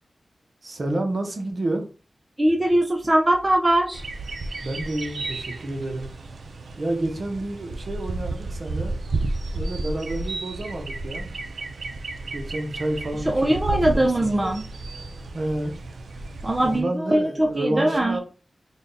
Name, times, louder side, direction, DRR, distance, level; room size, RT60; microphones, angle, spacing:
voice 1, 0.6-1.9 4.6-6.1 6.8-9.0 9.5-11.3 12.3-14.3 15.3-15.8 16.6-18.2, right 1 dB, 60° right, 4 dB, 0.8 m, -29 dB
voice 2, 2.4-4.0 13.3-14.7 16.4-18.2, right 1 dB, 30° right, 3 dB, 0.4 m, -21 dB
sound 1, 3.9-16.8, right 3 dB, 85° right, 0.4 m, -32 dB
3.5 x 2.2 x 3.9 m, 0.37 s
wide cardioid pair, 65°, 0 cm